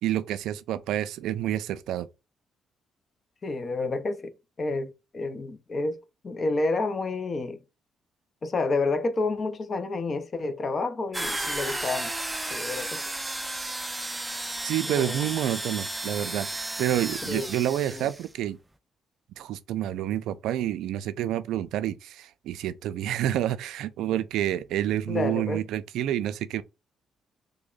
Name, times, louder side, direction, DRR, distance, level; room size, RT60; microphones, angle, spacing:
voice 1, 0.0-2.1 14.6-18.6 19.4-26.6, right 12 dB, 85° right, 0.3 m, -28 dB
voice 2, 3.4-7.6 8.4-12.1 12.5-13.0 14.9-15.2 17.3-17.5 17.9-18.1 25.1-25.6, left 3 dB, 40° left, 0.5 m, -29 dB
sound 1, 11.1-18.3, right 2 dB, 10° right, 0.4 m, -33 dB
3.4 x 2.2 x 3.7 m
cardioid pair, 90°, 0 cm